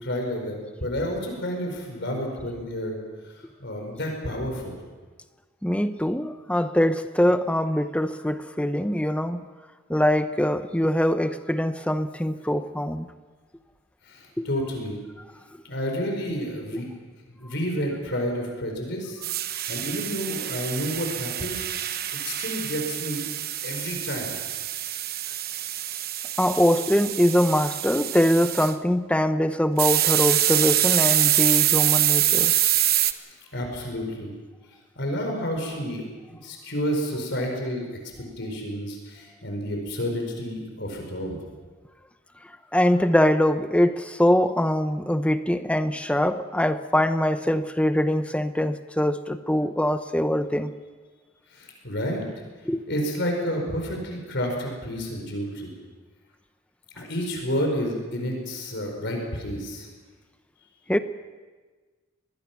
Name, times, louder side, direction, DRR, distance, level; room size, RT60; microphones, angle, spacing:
voice 1, 0.0-3.0 3.6-4.7 14.1-14.9 15.7-16.9 17.3-19.2 19.7-21.9 22.2-23.2 23.6-24.3 33.5-34.3 35.0-36.0 36.3-37.8 38.4-41.4 51.5-52.2 52.9-55.7 57.0-59.9, equal, 60° left, 2 dB, 4.9 m, -30 dB
voice 2, 5.6-9.5 9.9-13.1 14.4-14.5 16.7-16.8 26.4-32.5 42.7-50.7 52.6-52.8 60.9-61.0, left 1 dB, 5° left, 10 dB, 0.8 m, -23 dB
sound 1, 19.2-28.7 29.8-33.1, right 13 dB, 50° right, 0.9 m, -25 dB
25.0 x 21.0 x 6.0 m, 1.4 s
head